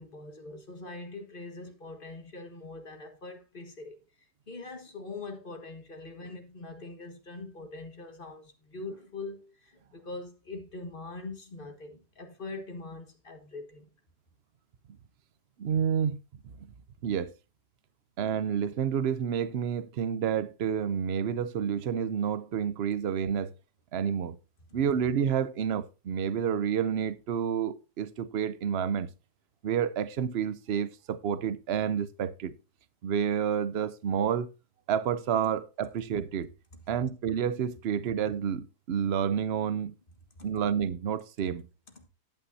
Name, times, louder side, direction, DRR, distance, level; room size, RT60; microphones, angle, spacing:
voice 1, 0.0-4.0 4.5-13.9 40.4-40.5 41.4-41.5 41.9-42.1, left 3 dB, 35° left, 1.6 m, -43 dB
voice 2, 15.6-16.2 16.4-16.5 17.0-17.3 18.2-23.5 23.9-24.4 24.7-29.1 29.6-32.5 33.0-34.5 34.9-36.5 36.9-39.9 40.4-41.7, right 8 dB, 60° right, 0.6 m, -29 dB
11.0 x 9.0 x 2.7 m
omnidirectional pair, 1.8 m